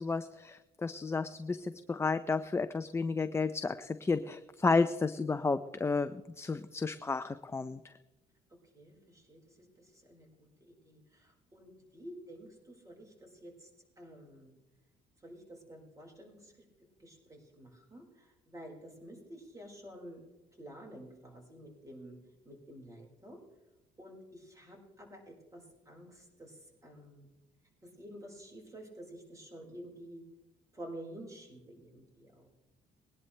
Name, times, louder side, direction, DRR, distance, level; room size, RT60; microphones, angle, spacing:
voice 1, 0.0-7.8, left 4 dB, 15° left, 10 dB, 0.5 m, -32 dB
voice 2, 8.7-13.7 14.0-14.5 15.2-16.5 17.0-20.2 20.6-22.2 22.4-23.4 24.0-27.3 27.8-30.2 30.7-32.5, right 1 dB, 20° right, 0 dB, 4.7 m, -50 dB
21.5 x 11.0 x 3.3 m, 1.0 s
cardioid pair, 110°, 17 cm